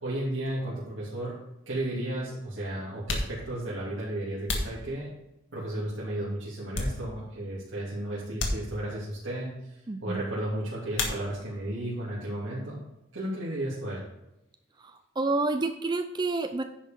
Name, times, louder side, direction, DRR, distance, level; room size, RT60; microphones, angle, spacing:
voice 1, 0.0-1.4 1.7-5.1 5.5-12.8 13.1-14.0, right 1 dB, 75° right, -9 dB, 2.8 m, -34 dB
sound 1, 2.2-2.3 2.9-5.5 6.1-7.5 7.7-7.9 8.3-9.2 10.9-11.7 12.0-12.7 12.9-15.1, left 2 dB, 70° left, 1.7 m, -35 dB
voice 2, 9.9-10.3 14.8-16.6, right 3 dB, 20° right, 8 dB, 0.5 m, -29 dB
10.0 x 5.4 x 5.3 m, 0.91 s
head